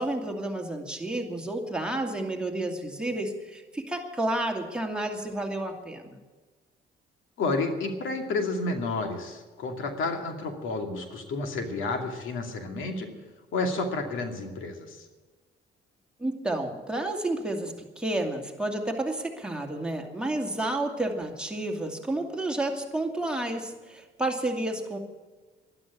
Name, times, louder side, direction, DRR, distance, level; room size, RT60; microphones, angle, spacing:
voice 1, 0.0-6.2 16.2-25.0, right 1 dB, 5° right, 1 dB, 2.5 m, -31 dB
voice 2, 7.4-13.1 13.5-15.1, left 3 dB, 80° left, 4 dB, 2.5 m, -30 dB
12.0 x 11.5 x 8.4 m, 1.3 s
cardioid pair, 90°, 20 cm